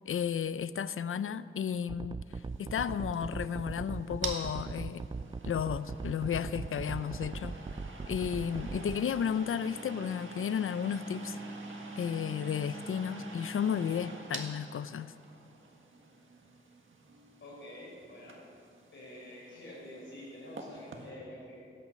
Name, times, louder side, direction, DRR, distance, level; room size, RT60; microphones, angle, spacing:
voice 1, 0.1-2.2 2.6-5.0 5.4-7.6 8.1-11.4 12.0-15.1, left 8 dB, 80° left, 0.4 m, -33 dB
sound 1, 1.9-9.0, right 4 dB, 25° right, 0.4 m, -39 dB
sound 2, 2.4-21.1, right 2 dB, 70° right, 1.7 m, -46 dB
voice 2, 17.4-18.4 18.9-21.7, left 1 dB, 65° left, 4.3 m, -47 dB
16.5 x 9.3 x 7.5 m
wide cardioid pair, 115°, 21 cm